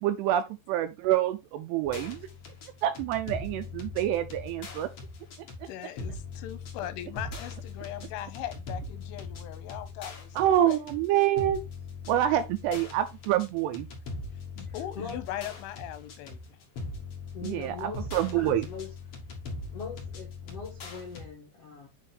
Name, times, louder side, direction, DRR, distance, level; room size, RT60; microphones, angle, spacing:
voice 1, 0.0-2.3 2.8-4.9 10.4-11.6 12.1-13.9 17.4-18.7, right 12 dB, 80° right, 2.5 m, -27 dB
sound 1, 1.8-21.3, left 3 dB, 50° left, 1.8 m, -41 dB
voice 2, 5.7-10.8 14.6-16.6, left 12 dB, 90° left, 3.4 m, -39 dB
voice 3, 14.7-15.2 17.3-18.9 19.7-21.9, left 5 dB, 70° left, 1.4 m, -41 dB
9.1 x 3.6 x 3.9 m
omnidirectional pair, 5.3 m